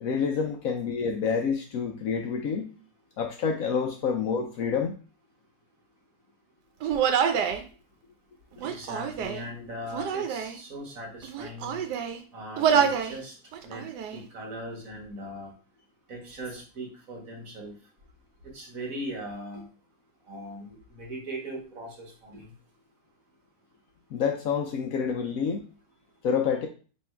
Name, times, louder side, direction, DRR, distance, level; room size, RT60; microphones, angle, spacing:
voice 1, 0.0-2.7 3.2-5.0 24.1-25.7 26.2-26.7, left 6 dB, 70° left, 4 dB, 0.9 m, -28 dB
Human voice, 6.8-7.6 8.5-9.5 9.9-10.6 11.2-12.2 12.6-13.2 13.5-14.2, right 7 dB, 85° right, 1.2 m, -27 dB
voice 2, 8.6-11.8 12.3-13.3 13.6-13.8 14.1-15.5 16.1-17.7 18.5-19.7 20.3-22.5, right 1 dB, 55° right, 0 dB, 1.7 m, -39 dB
3.6 x 3.1 x 4.4 m, 0.37 s
omnidirectional pair, 1.8 m